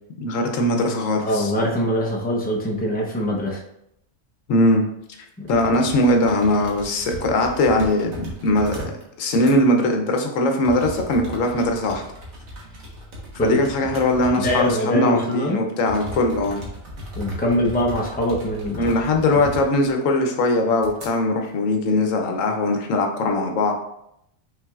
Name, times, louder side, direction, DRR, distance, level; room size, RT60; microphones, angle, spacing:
voice 1, 0.2-1.5 4.5-4.8 5.5-8.9 9.2-12.0 13.4-16.6 18.8-23.7, left 1 dB, 70° left, 4 dB, 1.1 m, -20 dB
voice 2, 1.2-3.6 5.4-5.5 13.4-13.6 14.3-15.6 17.2-18.9 19.3-19.4, equal, 10° left, -2 dB, 0.5 m, -23 dB
sound 1, 5.5-9.0 9.3-9.6 10.6-14.8 15.2-15.3 15.9-19.9 20.3-20.4 20.8-21.1, equal, 75° right, 1.6 m, -37 dB
5.8 x 3.8 x 2.4 m, 0.78 s
omnidirectional pair, 1.4 m